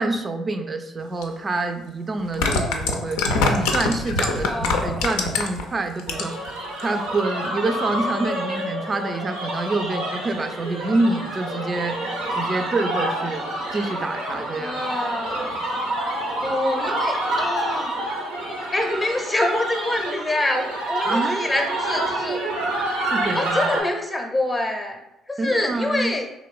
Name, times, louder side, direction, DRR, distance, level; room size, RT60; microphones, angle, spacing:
voice 1, 0.0-13.4 13.7-14.7 21.0-21.4 23.0-23.6 25.4-26.1, right 2 dB, 35° right, 7 dB, 0.4 m, -27 dB
sound 1, 1.2-1.3 2.2-5.6 6.0-6.5 6.8-6.9, left 3 dB, 75° left, 0.3 m, -23 dB
voice 2, 4.4-5.0 14.6-15.7 16.4-18.0 18.7-22.4 23.3-25.0 25.3-26.2, left 1 dB, 15° left, 2 dB, 0.6 m, -26 dB
sound 2, 6.1-23.8, right 1 dB, 90° right, 0.7 m, -28 dB
3.0 x 2.9 x 2.4 m, 0.89 s
hypercardioid pair, 50°, 0 cm